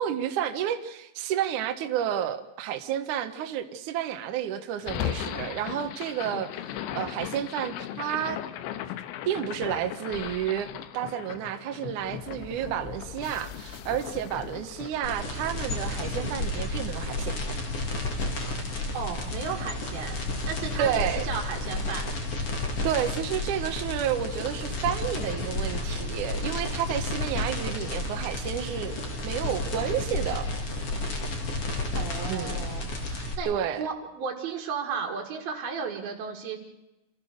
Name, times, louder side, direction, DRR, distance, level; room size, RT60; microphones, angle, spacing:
voice 1, 0.0-6.6 6.9-8.4 9.3-10.7 10.9-17.4 20.8-21.3 22.8-30.5 32.3-32.6 33.5-33.8, right 10 dB, 80° right, 7 dB, 1.8 m, -31 dB
sound 1, 4.8-17.0, left 11 dB, 80° left, 3.2 m, -37 dB
sound 2, 15.0-33.3, left 2 dB, 40° left, 2.5 m, -31 dB
voice 2, 18.9-20.2 20.5-22.1 31.9-33.5 33.8-36.6, right 5 dB, 60° right, 0 dB, 3.4 m, -34 dB
27.0 x 15.0 x 6.5 m, 0.97 s
omnidirectional pair, 5.4 m